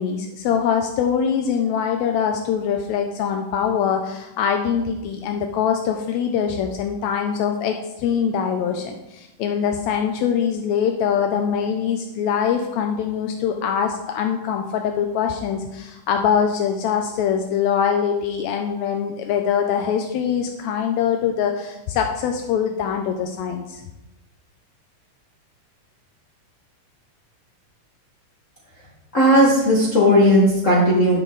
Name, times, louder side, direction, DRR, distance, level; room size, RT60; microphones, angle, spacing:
voice 1, 0.0-23.8, left 7 dB, 85° left, 4 dB, 1.6 m, -23 dB
voice 2, 29.1-31.2, equal, 55° left, -5 dB, 0.8 m, -15 dB
10.5 x 6.3 x 3.9 m, 0.97 s
omnidirectional pair, 3.8 m